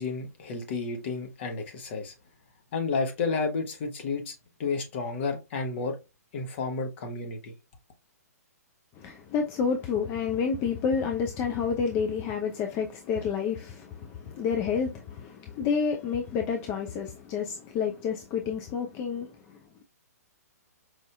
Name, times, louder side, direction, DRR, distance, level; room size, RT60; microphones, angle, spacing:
voice 1, 0.0-2.1 2.7-6.0 6.3-7.5, left 4 dB, 45° left, 1.0 m, -31 dB
voice 2, 9.0-19.8, left 6 dB, 25° left, 0.5 m, -29 dB
4.8 x 2.6 x 2.2 m
figure-of-eight pair, 120°, 9 cm